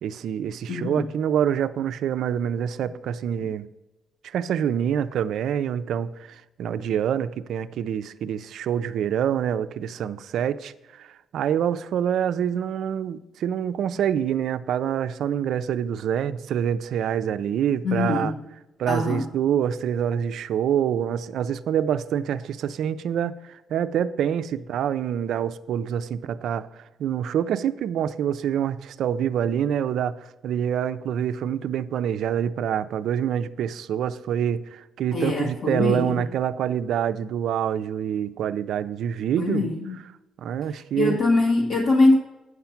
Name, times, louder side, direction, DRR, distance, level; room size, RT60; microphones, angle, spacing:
voice 1, 0.0-3.7 4.2-18.3 18.8-30.2 30.4-39.7 40.4-41.2, right 9 dB, 75° right, 0.4 m, -26 dB
voice 2, 0.7-1.1 3.4-3.5 17.8-18.3 18.9-19.2 35.1-36.2 39.4-40.0 41.0-42.2, left 2 dB, 70° left, 1.6 m, -22 dB
9.5 x 5.8 x 5.7 m
cardioid pair, 90°, 0 cm